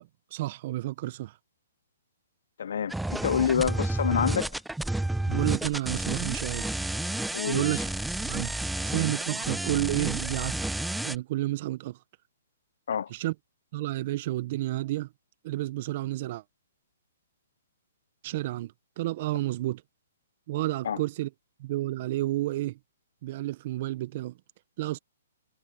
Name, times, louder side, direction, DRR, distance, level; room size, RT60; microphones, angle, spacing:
voice 1, 0.0-1.3 5.3-6.7 7.5-7.8 8.2-8.5 8.8-10.6 11.0-12.0 13.1-13.3 13.7-15.1 15.4-16.4 18.2-19.8 20.5-21.3 21.6-22.8 23.2-24.4 24.8-25.0, right 17 dB, 45° right, 1.1 m, -30 dB
voice 2, 2.6-4.5 7.3-7.7 12.9-13.1 20.8-21.0, left 8 dB, 70° left, 0.6 m, -27 dB
sound 1, 2.9-11.2, right 1 dB, 5° right, 0.3 m, -31 dB
hypercardioid pair, 135°, 0 cm